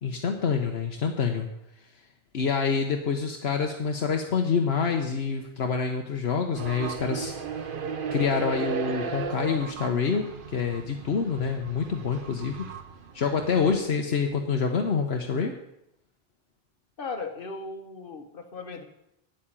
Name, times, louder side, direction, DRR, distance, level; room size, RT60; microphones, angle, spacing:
voice 1, 0.0-1.5 2.3-7.7 8.1-12.7 13.1-15.5, left 5 dB, 75° left, 3 dB, 1.2 m, -27 dB
sound 1, 6.5-13.8, right 6 dB, 55° right, 1.1 m, -35 dB
voice 2, 17.0-18.8, left 4 dB, 60° left, 5 dB, 1.6 m, -37 dB
9.2 x 8.5 x 8.9 m, 0.82 s
omnidirectional pair, 1.1 m